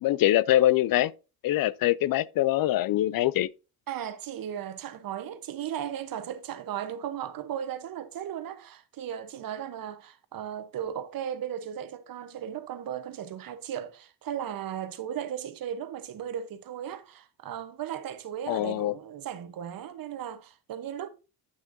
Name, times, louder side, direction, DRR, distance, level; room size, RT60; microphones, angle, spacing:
voice 1, 0.0-1.1 1.4-3.5 18.5-18.9, left 14 dB, 65° left, 0.5 m, -23 dB
voice 2, 3.9-21.1, right 9 dB, 65° right, 1.0 m, -36 dB
9.1 x 6.2 x 2.7 m
cardioid pair, 105°, 38 cm